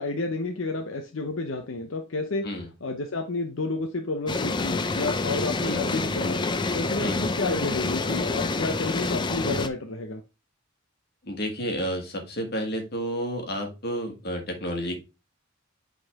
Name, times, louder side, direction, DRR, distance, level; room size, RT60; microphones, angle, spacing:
voice 1, 0.0-2.4 2.8-6.4 6.7-10.2, left 3 dB, 75° left, 4 dB, 0.7 m, -30 dB
sound 1, 4.3-9.7, left 3 dB, 20° left, 0.4 m, -27 dB
voice 2, 7.0-7.3 11.2-15.0, equal, 50° left, 3 dB, 1.7 m, -31 dB
7.9 x 3.9 x 3.5 m, 0.28 s
head